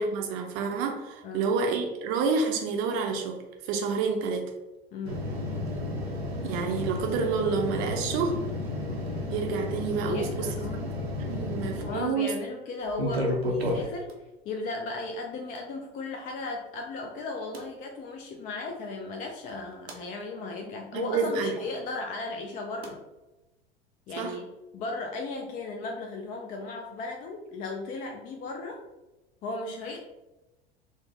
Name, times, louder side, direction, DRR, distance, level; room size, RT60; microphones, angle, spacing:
voice 1, 0.0-4.5 6.4-8.4 9.3-10.5 11.2-12.3 20.9-21.6 24.2-24.4, right 5 dB, 45° right, 3 dB, 0.6 m, -29 dB
voice 2, 4.9-5.2 10.0-10.8 11.8-14.1 14.5-23.0 24.1-24.5 24.7-28.8 29.4-30.0, left 3 dB, 30° left, 2 dB, 0.4 m, -36 dB
sound 1, 5.0-12.1 12.9-14.1 15.5-15.6 17.5-17.6 19.5-20.0 22.8-22.9, left 1 dB, 90° right, 0.6 m, -32 dB
3.9 x 2.0 x 3.2 m, 1.0 s
figure-of-eight pair, 80°, 30 cm